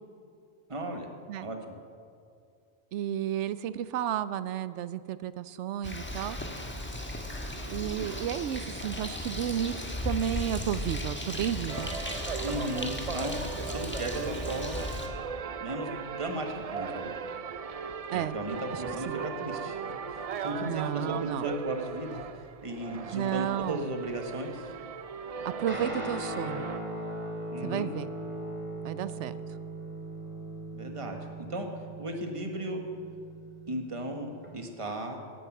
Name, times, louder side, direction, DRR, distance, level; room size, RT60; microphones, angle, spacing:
voice 1, 0.7-1.1 1.4-1.7 12.4-14.8 15.6-17.1 18.1-19.8 20.1-24.7 27.5-27.9 30.7-31.7 32.0-32.8 33.7-35.2, right 1 dB, 25° right, 3 dB, 1.4 m, -36 dB
voice 2, 2.9-6.4 7.7-9.7 10.0-12.0 18.1-18.4 19.1-19.2 20.6-21.5 23.1-23.8 25.4-26.7 27.6-28.1 28.8-29.4, right 10 dB, 80° right, 15 dB, 0.9 m, -32 dB
Bird, 5.8-15.1, left 1 dB, 10° left, 1.3 m, -36 dB
sound 1, 11.7-26.8, right 6 dB, 60° right, 0.3 m, -38 dB
Guitar, 25.7-34.5, right 1 dB, 10° right, 2.6 m, -39 dB
16.0 x 10.0 x 6.0 m, 2.4 s
omnidirectional pair, 1.2 m